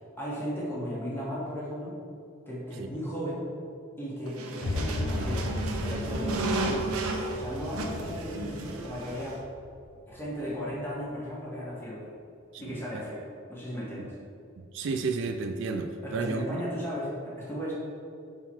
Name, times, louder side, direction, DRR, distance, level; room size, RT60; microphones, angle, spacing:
voice 1, 0.2-2.0 2.5-3.4 4.0-6.9 7.3-9.4 10.1-12.1 12.6-14.1 16.0-17.7, equal, 10° left, -7 dB, 1.3 m, -36 dB
sound 1, 4.3-9.4, right 2 dB, 85° right, 0.7 m, -33 dB
sound 2, 4.6-10.8, left 2 dB, 70° left, 0.5 m, -35 dB
voice 2, 12.5-13.0 14.7-16.6, right 4 dB, 60° right, 5 dB, 0.3 m, -32 dB
5.8 x 3.8 x 4.4 m, 2.6 s
head